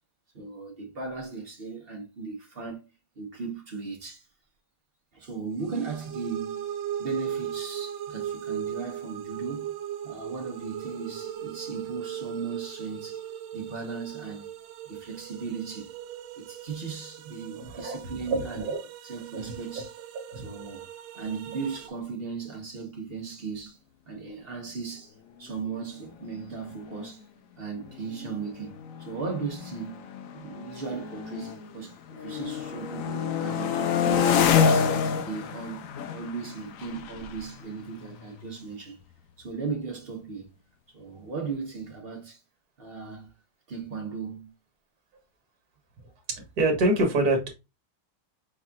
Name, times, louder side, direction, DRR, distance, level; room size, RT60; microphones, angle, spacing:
voice 1, 0.3-2.9 3.2-4.3 5.1-6.7 7.0-9.7 10.0-13.3 13.5-14.5 14.8-15.9 16.4-18.7 19.0-19.9 20.4-20.9 21.1-23.8 24.1-25.1 25.4-27.2 27.6-35.9 36.1-39.0 39.4-40.5 40.9-42.4 42.8-43.3 43.7-44.5, right 5 dB, 40° right, 1.0 m, -37 dB
sound 1, 5.6-21.9, right 10 dB, 85° right, 1.3 m, -38 dB
voice 2, 17.6-18.0 18.2-18.8 19.3-19.5 20.3-20.5 46.3-47.5, right 2 dB, 55° right, 1.8 m, -26 dB
sound 2, 26.4-26.5 26.7-27.1 27.8-31.8 32.1-38.8, left 7 dB, 70° left, 0.8 m, -28 dB
4.7 x 4.2 x 2.3 m
omnidirectional pair, 2.0 m